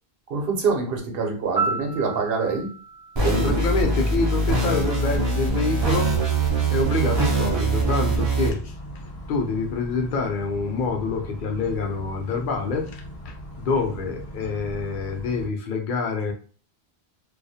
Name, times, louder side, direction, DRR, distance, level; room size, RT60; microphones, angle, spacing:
voice 1, 0.3-2.7 3.2-3.6, right 4 dB, 65° right, 2 dB, 0.8 m, -25 dB
Piano, 1.6-4.5 12.6-12.8, right 4 dB, 15° left, 0.5 m, -32 dB
voice 2, 3.2-6.1 6.7-8.7 9.3-16.3, left 4 dB, 60° left, 3 dB, 0.7 m, -26 dB
sound 1, 3.2-8.5, right 3 dB, 35° right, 0.4 m, -22 dB
sound 2, 5.8-15.5, equal, 80° left, 0.9 m, -39 dB
2.3 x 2.0 x 2.7 m, 0.38 s
omnidirectional pair, 1.1 m